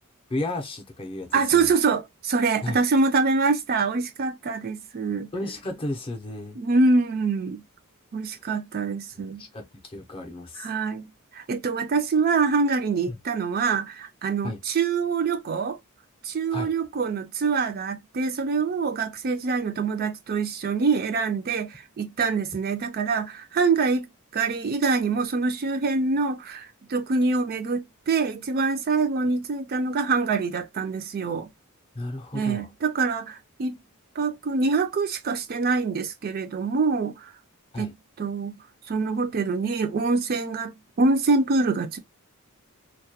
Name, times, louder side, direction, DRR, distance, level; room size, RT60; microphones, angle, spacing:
voice 1, 0.3-1.7 2.6-2.8 5.3-6.6 8.4-8.5 9.2-10.7 13.1-13.2 14.4-14.6 16.5-16.7 31.9-32.7 37.7-37.9, left 1 dB, 25° left, 0.5 m, -33 dB
voice 2, 1.3-5.3 6.6-7.6 8.1-9.4 10.6-15.8 16.2-24.1 24.3-31.5 32.3-33.8 34.2-37.3 37.8-37.9 38.2-38.5 38.9-42.0, right 4 dB, 40° right, 0.4 m, -25 dB
2.3 x 2.2 x 2.7 m
head